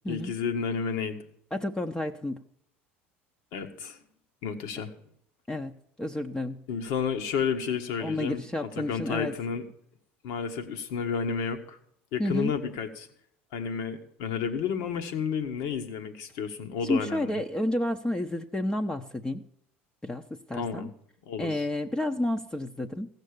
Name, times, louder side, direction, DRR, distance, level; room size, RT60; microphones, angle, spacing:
voice 1, 0.1-1.2 3.5-4.0 4.4-4.9 6.7-8.5 8.7-9.6 10.2-11.8 12.1-13.1 13.5-17.4 20.5-20.9 21.3-21.7, left 6 dB, 65° left, 7 dB, 1.5 m, -31 dB
voice 2, 1.5-2.4 5.5-5.7 6.0-6.6 8.0-9.3 12.2-12.5 16.8-19.4 20.0-20.2 20.5-20.9 21.4-23.1, left 1 dB, 10° left, 4 dB, 0.8 m, -30 dB
15.5 x 6.7 x 6.7 m, 0.68 s
hypercardioid pair, 75°, 7 cm